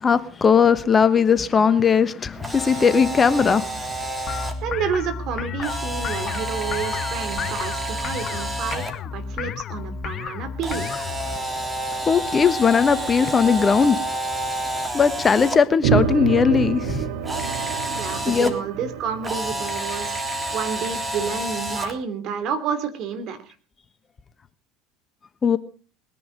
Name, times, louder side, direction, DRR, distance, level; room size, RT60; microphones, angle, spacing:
voice 1, 0.0-3.7 12.1-14.0 14.9-17.1 18.2-18.5 25.4-25.6, left 6 dB, 30° left, 1.2 m, -18 dB
Camera, 2.3-4.5 5.6-8.9 10.6-15.6 17.2-18.5 19.2-21.9, right 1 dB, 15° right, 3.4 m, -29 dB
sound 1, 4.3-11.4, left 6 dB, 45° left, 0.8 m, -32 dB
voice 2, 4.6-10.9 17.9-20.2 20.5-23.5, right 7 dB, 55° right, 3.0 m, -30 dB
sound 2, 15.8-20.5, right 7 dB, 70° right, 1.8 m, -27 dB
20.5 x 10.5 x 5.2 m
hypercardioid pair, 75°, 0 cm